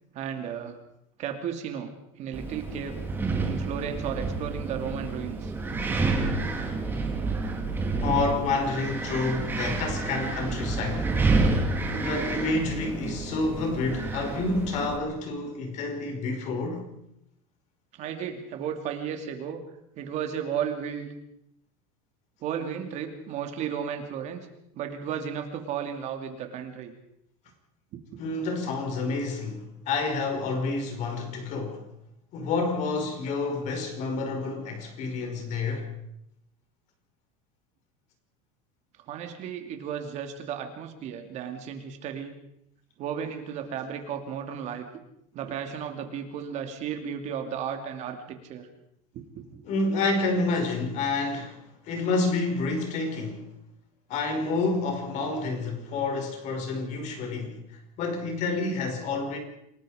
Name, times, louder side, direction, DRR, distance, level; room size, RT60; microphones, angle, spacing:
voice 1, 0.1-0.8 1.2-1.9 2.2-3.0 3.5-5.5 6.2-6.6 17.9-19.6 20.0-21.1 22.4-24.5 24.7-26.9 27.9-28.0 39.1-42.4 43.0-44.9 45.3-48.7 49.1-49.4, right 8 dB, 40° right, 2.6 m, -34 dB
Wind, 2.3-15.0, right 3 dB, 10° right, 2.8 m, -29 dB
voice 2, 8.0-11.2 11.9-16.8 28.2-31.9 32.3-35.9 49.7-53.5 54.1-57.6 58.0-59.4, left 3 dB, 40° left, 5.3 m, -29 dB
28.0 x 20.0 x 5.1 m
cardioid pair, 160°, 18 cm